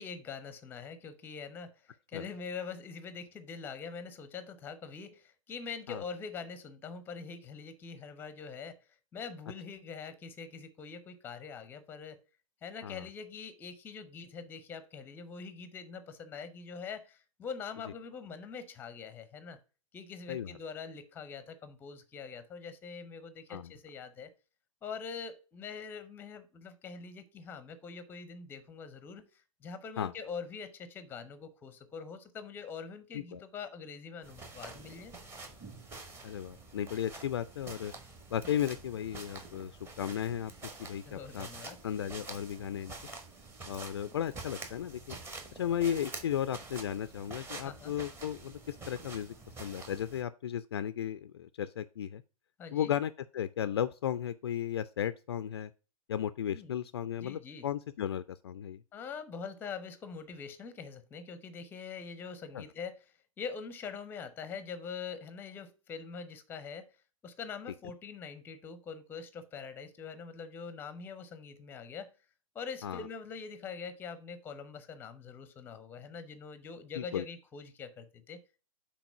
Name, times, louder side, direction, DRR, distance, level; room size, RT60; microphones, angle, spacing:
voice 1, 0.0-8.8 9.1-12.2 12.6-19.6 19.9-24.3 24.8-35.1 41.1-41.8 47.6-47.9 52.6-52.9 56.5-56.8 57.2-57.7 58.9-63.1 63.4-66.9 67.2-72.1 72.5-78.4, left 5 dB, 10° left, 0.7 m, -44 dB
sound 1, 34.2-50.2, right 3 dB, 15° right, 0.9 m, -47 dB
voice 2, 36.2-37.9 38.3-39.7 40.0-40.5 40.8-41.5 41.8-42.9 43.7-45.2 45.5-52.2 52.7-55.7 56.1-58.8 62.5-62.6 72.8-73.1 77.0-77.2, left 10 dB, 45° left, 0.4 m, -35 dB
5.9 x 4.1 x 5.5 m
figure-of-eight pair, 115°, 18 cm